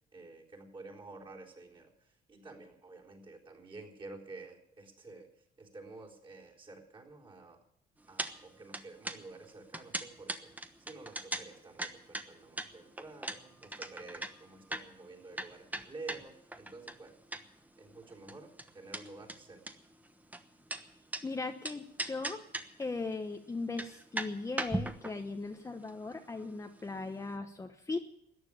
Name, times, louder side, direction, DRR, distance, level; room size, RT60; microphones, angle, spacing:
voice 1, 0.1-7.6 8.1-17.2 17.8-19.8, right 3 dB, 30° right, -2 dB, 4.0 m, -50 dB
sound 1, 8.2-8.3 8.6-17.7 17.9-21.2 21.6-22.9 23.1-23.2 23.6-27.0 27.3-27.4, right 1 dB, 10° right, 1.1 m, -39 dB
voice 2, 21.2-22.4 22.8-28.0, left 3 dB, 15° left, 5 dB, 1.0 m, -38 dB
14.0 x 9.5 x 10.0 m, 0.76 s
cardioid pair, 110°, 17 cm